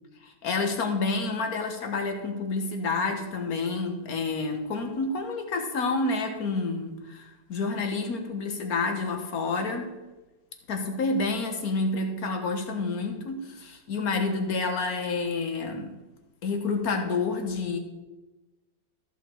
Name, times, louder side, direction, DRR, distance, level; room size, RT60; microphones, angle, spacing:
voice 1, 0.2-9.9 10.7-15.9 16.4-17.8, left 3 dB, 60° left, 5 dB, 1.7 m, -29 dB
13.5 x 5.7 x 4.5 m, 1.1 s
omnidirectional pair, 1.8 m